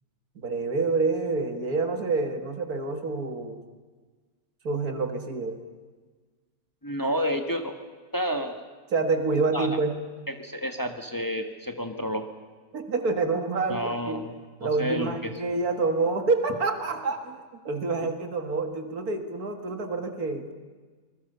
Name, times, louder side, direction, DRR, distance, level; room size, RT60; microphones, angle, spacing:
voice 1, 0.4-3.6 4.6-5.6 8.9-9.9 12.7-14.2 14.6-20.5, right 3 dB, 80° right, 6 dB, 2.3 m, -27 dB
voice 2, 6.8-7.8 8.1-8.6 9.5-9.8 10.3-12.2 13.7-15.3 17.8-17.9, equal, 15° left, 5 dB, 1.4 m, -30 dB
26.0 x 21.0 x 6.8 m, 1.4 s
omnidirectional pair, 1.6 m